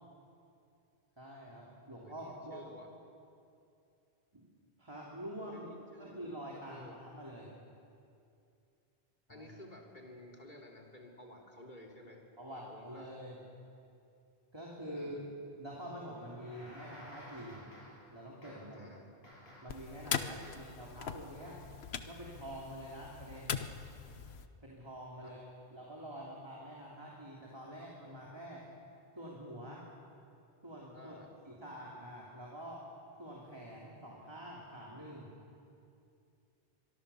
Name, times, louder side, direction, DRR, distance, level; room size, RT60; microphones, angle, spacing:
voice 1, 1.2-2.7 4.3-4.4 4.8-5.7 6.0-7.5 9.3-9.5 12.4-13.4 14.5-15.2 15.5-17.7 18.1-18.9 19.6-21.6 22.0-23.7 24.6-28.7 29.1-29.9 30.6-31.1 31.5-32.9 33.2-35.3, equal, 25° right, -4 dB, 3.1 m, -46 dB
voice 2, 2.0-2.9 5.5-6.3 6.6-7.0 9.3-13.1 14.9-15.3 18.7-19.2 20.2-20.6 25.2-25.4 30.9-31.3, left 1 dB, 50° left, 0 dB, 3.5 m, -53 dB
sound 1, 16.1-18.1 18.4-18.8 19.2-19.9 20.4-20.8, equal, 70° left, 7.4 m, -54 dB
sound 2, 19.7-24.5, left 7 dB, 85° left, 1.2 m, -41 dB
24.5 x 23.0 x 7.0 m, 2.6 s
omnidirectional pair, 1.0 m